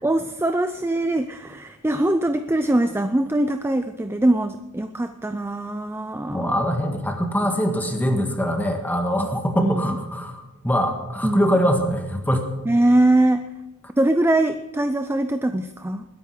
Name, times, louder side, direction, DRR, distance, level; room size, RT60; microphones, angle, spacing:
voice 1, 0.0-6.5 9.2-9.3 9.6-9.8 11.2-11.6 12.7-13.4 14.0-16.0, right 1 dB, 10° right, 9 dB, 0.4 m, -22 dB
voice 2, 6.3-12.5, equal, 10° left, 4 dB, 1.7 m, -23 dB
21.0 x 10.0 x 5.0 m, 1.0 s
head